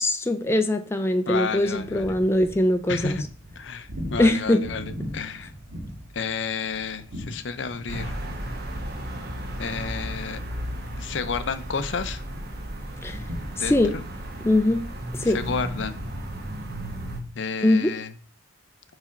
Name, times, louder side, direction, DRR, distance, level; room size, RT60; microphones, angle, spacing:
voice 1, 0.0-3.2 4.2-4.6 13.0-13.2 13.6-13.9 14.4-14.8 15.1-15.4 17.6-17.9, left 1 dB, 15° left, 7 dB, 0.4 m, -22 dB
voice 2, 1.3-2.1 2.9-3.2 3.6-5.5 6.1-8.2 9.6-10.4 11.0-12.2 13.6-14.0 15.2-16.0 17.4-18.1, left 5 dB, 65° left, 11 dB, 0.6 m, -31 dB
sound 1, 1.4-16.1, equal, 80° right, 1.7 m, -41 dB
sound 2, 7.9-17.2, right 1 dB, 55° right, 1.1 m, -34 dB
4.8 x 4.2 x 5.7 m, 0.39 s
head